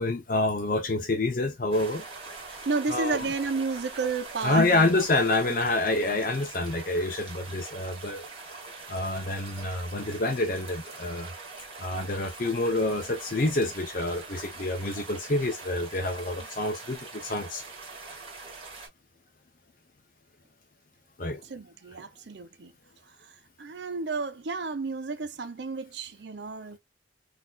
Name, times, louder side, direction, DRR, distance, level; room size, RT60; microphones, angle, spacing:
voice 1, 0.0-2.0 2.9-3.3 4.4-8.5 8.9-11.3 11.8-17.6 21.2-21.4, left 2 dB, 45° left, 0.6 m, -27 dB
sound 1, 1.7-18.9, right 3 dB, 30° right, 1.7 m, -43 dB
voice 2, 2.5-4.9 6.2-6.3 21.2-22.7 23.6-26.8, right 4 dB, 70° right, 0.6 m, -32 dB
4.0 x 2.8 x 2.3 m
head